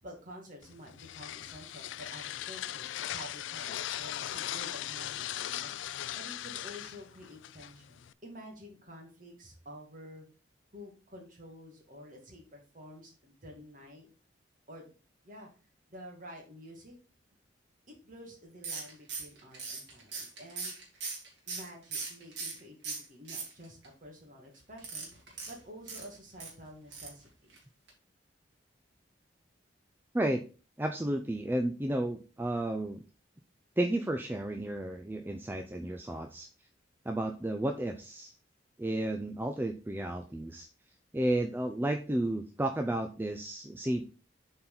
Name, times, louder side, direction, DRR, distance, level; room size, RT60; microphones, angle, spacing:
voice 1, 0.0-10.3 10.7-14.1 14.7-14.9 15.2-15.5 15.9-16.9 17.9-20.7 21.5-27.5, equal, 45° right, 0 dB, 2.2 m, -50 dB
sound 1, 0.6-8.1, left 12 dB, 75° left, 0.3 m, -39 dB
sound 2, 18.6-22.6 22.8-23.9 24.8-26.5 26.9-27.2 27.5-27.6 27.9-28.0, right 4 dB, 65° right, 2.3 m, -39 dB
voice 2, 30.8-33.0 33.8-36.5 37.1-38.3 38.8-40.7 41.1-44.0, right 1 dB, 10° right, 5 dB, 0.4 m, -32 dB
7.6 x 4.4 x 3.9 m, 0.35 s
head